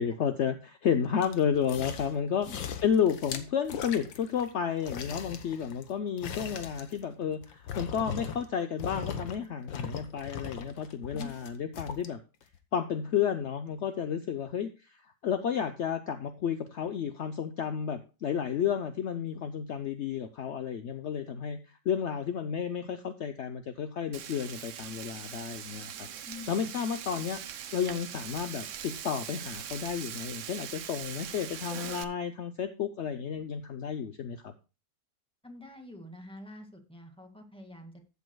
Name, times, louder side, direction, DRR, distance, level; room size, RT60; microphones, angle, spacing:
voice 1, 0.0-2.5 2.8-12.2 12.7-21.6 21.8-26.1 26.5-34.5, left 8 dB, 65° left, 9 dB, 0.7 m, -32 dB
sound 1, 1.2-2.2 2.4-4.5 4.8-8.5 8.8-9.4 9.7-12.1 12.5-12.6, left 7 dB, 90° left, 1.8 m, -39 dB
voice 2, 2.2-2.6 11.1-11.3 26.3-26.5 35.4-38.0, left 2 dB, 5° left, 4 dB, 1.8 m, -46 dB
Frying (food), 24.1-32.0, right 9 dB, 60° right, 0.8 m, -41 dB
14.0 x 8.5 x 2.2 m, 0.31 s
omnidirectional pair, 2.0 m